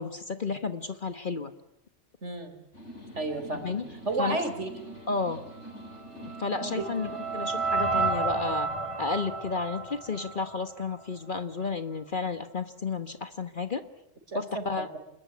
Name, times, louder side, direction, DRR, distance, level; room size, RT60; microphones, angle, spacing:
voice 1, 0.0-1.5 3.6-3.8 4.2-4.4 5.1-5.4 6.2-8.7 9.0-13.9 14.3-14.9, left 4 dB, 45° left, 10 dB, 1.4 m, -32 dB
voice 2, 2.2-2.5 3.2-3.8 4.0-4.7 6.6-6.8 14.3-14.6, right 2 dB, 75° right, 7 dB, 4.5 m, -31 dB
sound 1, 2.7-8.1, right 1 dB, 80° left, 5.7 m, -45 dB
sound 2, 5.9-11.0, right 4 dB, 25° right, 2.5 m, -32 dB
27.0 x 21.5 x 9.6 m, 0.84 s
omnidirectional pair, 1.2 m